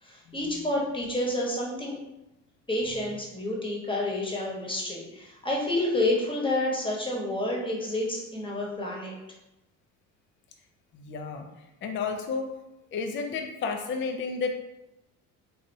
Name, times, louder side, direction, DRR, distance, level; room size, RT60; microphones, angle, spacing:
voice 1, 0.0-1.9 2.7-9.1, left 1 dB, 10° left, -2 dB, 1.1 m, -29 dB
voice 2, 10.9-11.5 11.8-12.5 12.9-14.5, left 5 dB, 30° left, 4 dB, 0.4 m, -31 dB
3.3 x 2.5 x 2.6 m, 0.91 s
hypercardioid pair, 55°, 41 cm